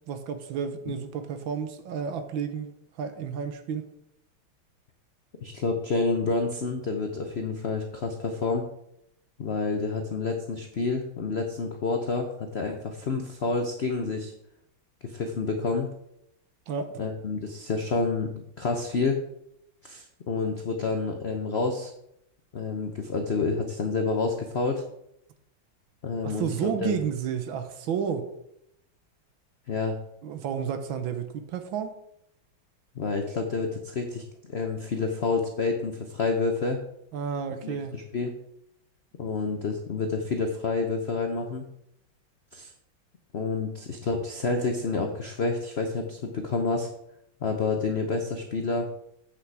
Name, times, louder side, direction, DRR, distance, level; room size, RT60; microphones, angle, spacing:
voice 1, 0.1-3.9 16.7-17.1 26.2-28.3 30.2-32.0 37.1-38.0, right 7 dB, 70° right, 9 dB, 1.5 m, -31 dB
voice 2, 5.4-8.7 9.4-14.3 15.0-15.9 17.0-19.2 19.8-21.9 22.5-24.8 26.0-27.0 29.7-30.0 33.0-36.8 37.6-38.4 39.2-41.7 42.5-42.7 43.3-46.9 47.4-48.9, left 4 dB, 85° left, 4 dB, 0.5 m, -29 dB
8.3 x 6.2 x 4.7 m, 0.77 s
omnidirectional pair, 2.4 m